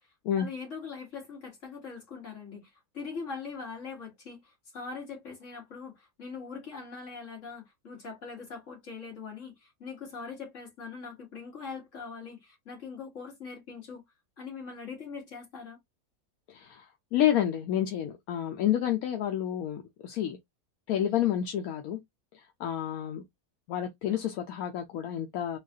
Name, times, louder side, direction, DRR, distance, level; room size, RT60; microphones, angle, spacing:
voice 1, 0.0-14.0 14.4-15.8, left 5 dB, 55° left, 2.1 m, -42 dB
voice 2, 16.5-20.4 20.9-22.0 22.3-23.2 23.7-25.6, left 11 dB, 75° left, 1.1 m, -29 dB
3.9 x 2.4 x 2.7 m
omnidirectional pair, 1.6 m